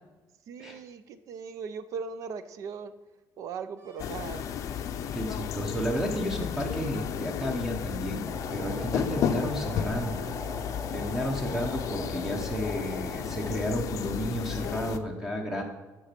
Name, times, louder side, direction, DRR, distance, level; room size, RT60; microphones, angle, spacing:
voice 1, 0.5-2.9 3.4-4.5, right 6 dB, 55° right, 13 dB, 0.6 m, -38 dB
sound 1, 3.8-8.2, right 1 dB, 75° right, 2.9 m, -51 dB
sound 2, 4.0-15.0, left 9 dB, 55° left, 0.5 m, -33 dB
voice 2, 5.1-10.2 10.9-15.6, equal, 5° right, 2 dB, 0.9 m, -32 dB
sound 3, 8.3-13.6, right 1 dB, 20° right, 1.3 m, -41 dB
8.4 x 6.1 x 5.9 m, 1.2 s
cardioid pair, 180°, 6 cm